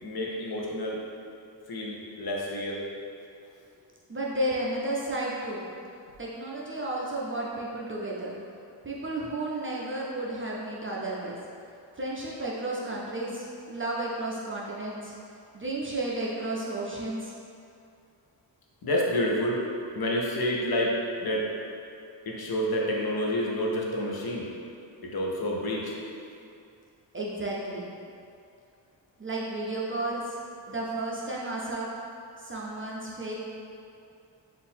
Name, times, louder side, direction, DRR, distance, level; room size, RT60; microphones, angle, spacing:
voice 1, 0.0-1.0 1.7-2.9 18.8-19.6 20.0-21.5 22.3-24.5 25.0-26.0, equal, 55° left, -3 dB, 0.7 m, -29 dB
voice 2, 4.1-5.7 6.2-8.4 8.8-11.4 12.0-15.1 15.5-17.3 27.1-27.9 29.2-30.4 30.7-31.9 32.4-33.4, right 1 dB, 30° right, -5 dB, 0.4 m, -32 dB
3.7 x 2.5 x 4.3 m, 2.5 s
wide cardioid pair, 145°, 44 cm